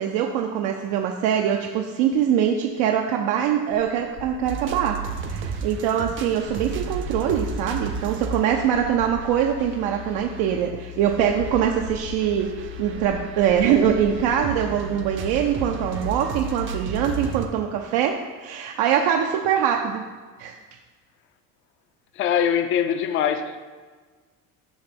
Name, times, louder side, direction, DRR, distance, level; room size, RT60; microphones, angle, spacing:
voice 1, 0.0-5.0 5.3-12.5 12.8-20.0 20.4-20.5, right 9 dB, 75° right, 2 dB, 0.6 m, -23 dB
sound 1, 3.7-6.0 6.4-10.6 11.0-14.4, left 6 dB, 60° left, 1.1 m, -41 dB
sound 2, 4.4-10.7 11.1-17.5, right 5 dB, 35° right, 0.5 m, -34 dB
sound 3, 6.7-17.2, left 16 dB, 80° left, 0.8 m, -41 dB
voice 2, 22.2-23.6, left 8 dB, 35° left, 9 dB, 0.4 m, -22 dB
7.9 x 2.9 x 6.0 m, 1.5 s
cardioid pair, 155°, 36 cm